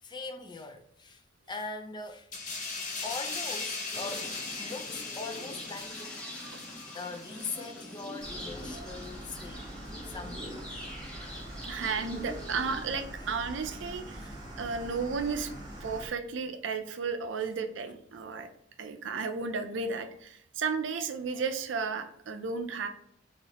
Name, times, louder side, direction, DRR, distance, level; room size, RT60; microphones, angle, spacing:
voice 1, 0.0-2.3 3.0-6.5 6.9-9.8 10.0-10.7 11.7-11.8 14.2-14.3, left 3 dB, 25° left, 0.4 m, -41 dB
sound 1, 2.3-9.5 9.8-10.1, left 4 dB, 40° left, 0.8 m, -39 dB
sound 2, 3.9-12.8, equal, 5° left, 0.8 m, -44 dB
sound 3, 8.2-16.1, right 1 dB, 25° right, 1.1 m, -43 dB
voice 2, 11.3-15.5 15.8-18.5 18.8-22.9, right 5 dB, 70° right, 0.5 m, -34 dB
3.9 x 3.0 x 2.9 m
head